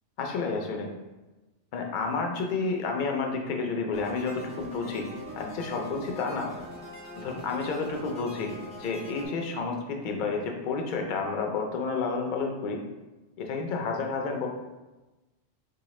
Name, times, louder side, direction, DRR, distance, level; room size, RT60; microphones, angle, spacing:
voice 1, 0.2-0.9 1.7-5.1 5.4-6.5 7.2-12.8 13.4-14.5, left 4 dB, 60° left, 2 dB, 0.5 m, -30 dB
sound 1, 3.9-9.3, equal, 20° left, 0.6 m, -43 dB
3.9 x 2.3 x 3.0 m, 1.1 s
omnidirectional pair, 1.2 m